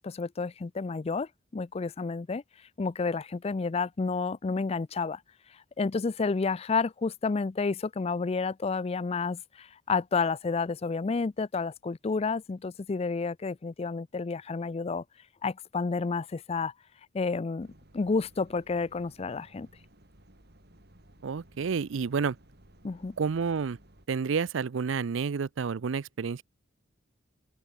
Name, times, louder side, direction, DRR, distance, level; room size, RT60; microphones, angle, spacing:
voice 1, 0.0-2.4 2.8-5.2 5.8-15.0 15.4-16.7 17.1-17.7 17.9-19.7 22.8-23.2, left 4 dB, 30° left, 0.4 m, -30 dB
sound 1, 17.6-24.1, right 1 dB, 55° right, 5.9 m, -58 dB
voice 2, 21.2-22.4 23.2-23.8 24.1-26.4, right 5 dB, 80° right, 0.5 m, -30 dB
open air
head